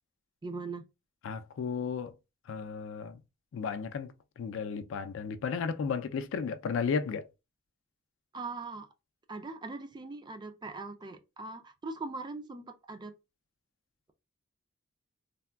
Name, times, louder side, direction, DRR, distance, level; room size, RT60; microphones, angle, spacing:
voice 1, 0.4-0.9 8.3-8.9 9.3-13.1, right 3 dB, 20° right, 0.4 m, -40 dB
voice 2, 1.2-2.1 2.5-3.2 3.5-7.3, left 5 dB, 65° left, 0.3 m, -34 dB
3.4 x 2.2 x 2.2 m
head